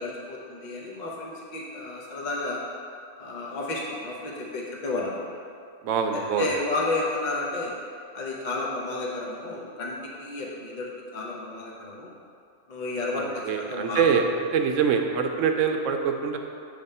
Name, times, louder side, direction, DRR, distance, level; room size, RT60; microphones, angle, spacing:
voice 1, 0.0-2.6 3.2-5.2 6.1-7.7 8.1-12.1 12.7-14.1, left 2 dB, 40° left, -3 dB, 0.9 m, -32 dB
voice 2, 5.8-6.5 13.1-16.4, right 6 dB, 80° right, 5 dB, 1.0 m, -24 dB
7.5 x 3.5 x 5.4 m, 2.4 s
omnidirectional pair, 1.3 m